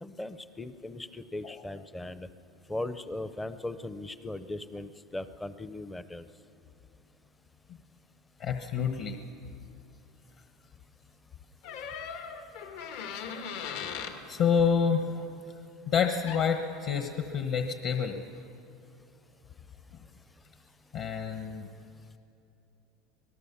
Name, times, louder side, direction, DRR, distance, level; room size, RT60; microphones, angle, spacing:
voice 1, 0.0-2.3 2.7-6.3, left 1 dB, 5° left, 12 dB, 0.6 m, -38 dB
voice 2, 8.4-9.2 14.3-15.3 15.9-18.2 20.9-21.7, left 6 dB, 40° left, 4 dB, 1.2 m, -28 dB
sound 1, 11.6-14.2 16.3-16.5, left 7 dB, 70° left, 2.1 m, -38 dB
26.0 x 19.0 x 7.1 m, 2.7 s
cardioid pair, 175°, 0 cm